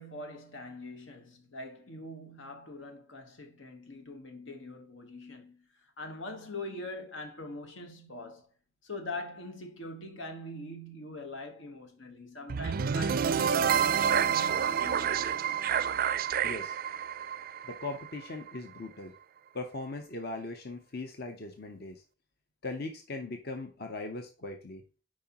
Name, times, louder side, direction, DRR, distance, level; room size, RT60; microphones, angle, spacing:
voice 1, 0.0-8.5 8.8-15.3, left 2 dB, 85° left, 1.3 m, -43 dB
sound 1, 12.5-18.6, right 7 dB, 50° right, 0.4 m, -28 dB
voice 2, 16.4-16.8 17.6-19.1 19.5-22.0 22.6-24.8, left 2 dB, 55° left, 0.8 m, -39 dB
9.0 x 4.9 x 2.9 m
head